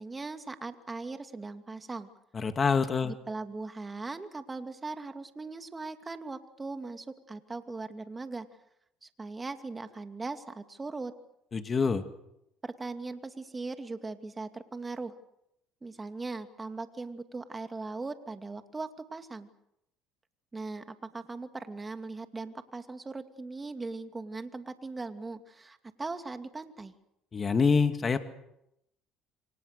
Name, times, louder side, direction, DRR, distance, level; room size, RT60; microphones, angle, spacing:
voice 1, 0.0-2.1 3.0-8.5 9.0-11.1 12.6-15.1 15.8-19.5 20.5-26.9, right 3 dB, 20° right, 8 dB, 2.5 m, -39 dB
voice 2, 2.3-3.1 11.5-12.0 27.3-28.2, left 5 dB, 35° left, 8 dB, 2.3 m, -26 dB
28.5 x 25.0 x 6.8 m, 0.84 s
supercardioid pair, 80°, 0 cm